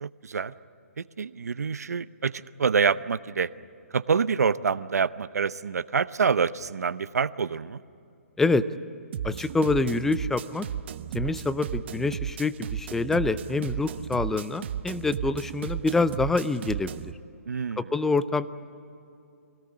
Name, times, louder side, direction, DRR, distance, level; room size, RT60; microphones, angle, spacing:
voice 1, 0.0-0.5 1.0-2.3 2.6-3.5 3.9-7.8 17.5-17.8, right 5 dB, 80° right, 15 dB, 0.8 m, -26 dB
sound 1, 9.1-17.1, right 9 dB, 45° right, 0.8 m, -34 dB
voice 2, 9.2-10.7 11.1-16.9 17.8-18.5, left 3 dB, 5° left, 14 dB, 0.5 m, -26 dB
24.5 x 18.0 x 9.7 m, 2.6 s
hypercardioid pair, 150°, 8 cm